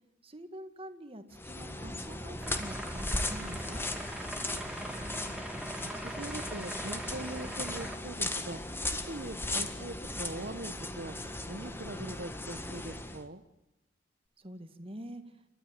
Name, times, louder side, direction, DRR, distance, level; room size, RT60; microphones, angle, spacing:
voice 1, 0.2-3.9 14.4-15.2, right 1 dB, 30° right, 8 dB, 2.1 m, -46 dB
sound 1, 1.3-13.2, left 2 dB, 10° left, 1.7 m, -37 dB
sound 2, 2.4-8.0, right 1 dB, 5° right, 2.6 m, -42 dB
voice 2, 4.6-5.4 5.8-8.6 9.0-11.2 11.5-13.4, right 2 dB, 50° right, 7 dB, 1.1 m, -42 dB
30.0 x 13.5 x 8.9 m, 0.89 s
head